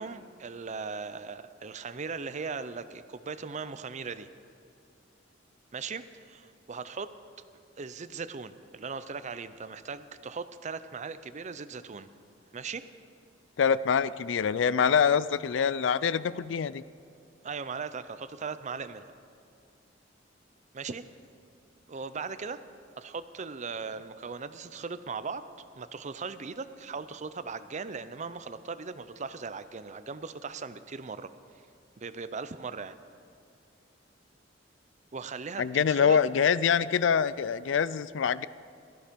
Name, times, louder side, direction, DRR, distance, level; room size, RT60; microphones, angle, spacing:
voice 1, 0.0-4.3 5.7-7.1 7.8-12.1 12.5-12.8 17.4-19.1 20.7-21.1 21.9-22.6 23.0-25.4 25.8-31.3 32.0-33.0 35.1-36.2, right 5 dB, 40° right, 13 dB, 0.6 m, -38 dB
voice 2, 13.6-16.8 35.6-38.5, left 7 dB, 75° left, 18 dB, 0.4 m, -25 dB
16.0 x 14.0 x 5.2 m, 2.4 s
head